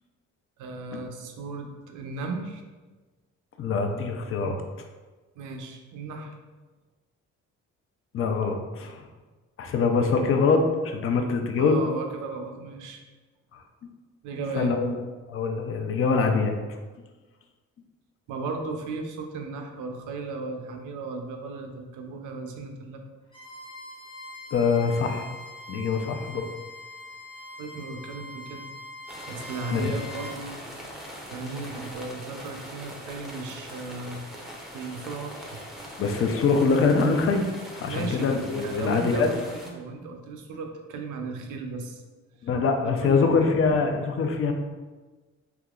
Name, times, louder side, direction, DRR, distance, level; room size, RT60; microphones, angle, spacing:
voice 1, 0.6-2.6 5.4-6.3 11.6-13.0 14.2-14.8 18.3-23.0 27.6-28.7 29.3-30.6 31.3-34.3 34.7-35.6 37.9-38.4 38.6-42.0 42.8-43.3, right 3 dB, 85° right, 4 dB, 0.5 m, -36 dB
voice 2, 3.6-4.6 8.1-9.1 9.6-11.8 13.5-13.6 14.6-15.0 15.3-16.6 24.5-25.3 25.7-26.4 29.7-29.9 36.0-37.4 37.7-39.3 42.4-44.5, left 4 dB, 45° left, 4 dB, 0.5 m, -24 dB
Bowed string instrument, 23.3-30.4, left 2 dB, 15° left, 1.1 m, -42 dB
sound 1, 29.1-39.7, equal, ahead, 0.6 m, -41 dB
3.5 x 2.8 x 2.3 m, 1.3 s
cardioid pair, 90°, 30 cm